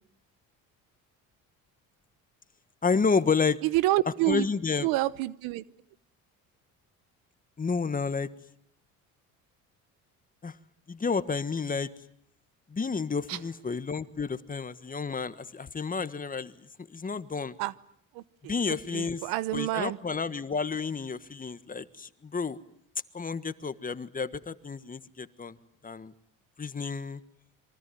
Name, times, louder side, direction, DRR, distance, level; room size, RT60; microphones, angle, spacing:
voice 1, 2.8-3.6 4.3-4.9 7.6-8.3 10.4-10.6 10.9-11.9 12.7-17.6 18.5-19.2 19.5-22.6 23.1-25.6 25.8-26.1 26.6-27.2, left 5 dB, 25° left, 13 dB, 1.5 m, -30 dB
voice 2, 3.6-4.5 4.8-5.6 13.3-13.4 17.6-17.7 18.1-20.0, right 17 dB, 90° right, 18 dB, 1.1 m, -28 dB
27.5 x 23.5 x 9.3 m, 0.69 s
cardioid pair, 90°, 35 cm